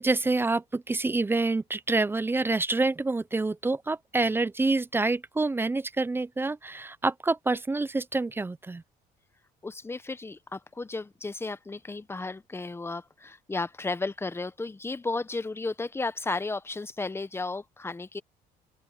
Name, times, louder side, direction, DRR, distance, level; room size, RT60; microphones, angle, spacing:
voice 1, 0.0-8.8, right 3 dB, 15° right, 0.4 m, -27 dB
voice 2, 9.6-18.2, left 3 dB, 15° left, 0.9 m, -34 dB
open air
cardioid pair, 110°, 17 cm